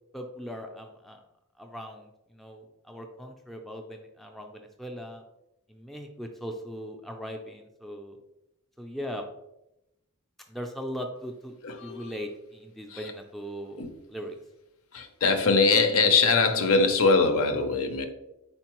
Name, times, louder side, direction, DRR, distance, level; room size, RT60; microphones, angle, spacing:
voice 1, 0.1-1.2 1.6-5.2 5.7-8.2 8.8-9.3 10.5-11.6 11.8-13.8 14.1-14.4, equal, ahead, 2 dB, 0.3 m, -39 dB
voice 2, 11.6-12.2 12.9-13.1 13.8-13.9 14.9-18.0, left 4 dB, 65° left, 7 dB, 0.6 m, -23 dB
4.4 x 4.0 x 2.9 m, 0.88 s
head